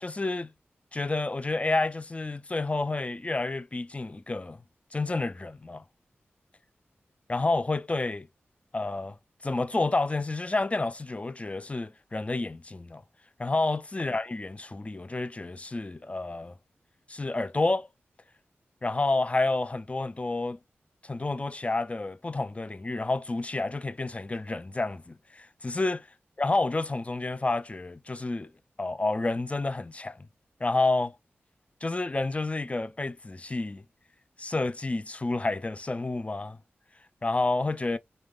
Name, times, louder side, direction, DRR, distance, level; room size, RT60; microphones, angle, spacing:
voice 1, 0.0-0.5 0.9-4.6 4.9-5.8 7.3-8.3 8.7-9.2 9.4-13.0 13.4-16.5 17.1-17.9 18.8-20.6 21.0-26.0 26.4-28.5 28.8-30.2 30.6-31.2 31.8-33.8 34.4-36.6 37.2-38.0, left 2 dB, 30° left, 0.5 m, -29 dB
3.7 x 3.5 x 2.5 m
cardioid pair, 45°, 4 cm